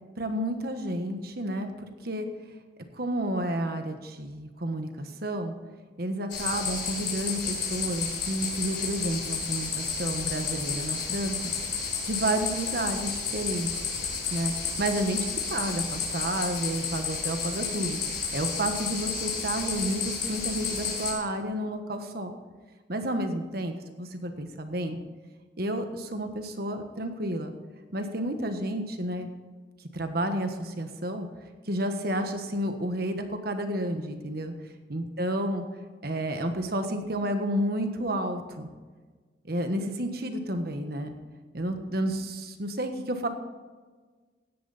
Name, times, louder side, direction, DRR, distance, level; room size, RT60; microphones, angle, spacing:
voice 1, 0.2-1.7 2.0-2.3 2.9-5.5 6.0-11.5 12.1-13.8 14.3-14.5 14.8-18.0 18.3-22.3 22.9-25.0 25.6-27.5 27.9-29.3 29.9-31.3 31.7-34.5 34.9-35.6 36.0-38.7 39.5-41.1 41.5-43.3, right 1 dB, 55° right, 6 dB, 1.5 m, -31 dB
sound 1, 6.3-21.1, left 5 dB, 65° left, 4.7 m, -31 dB
16.5 x 10.5 x 4.2 m, 1.4 s
head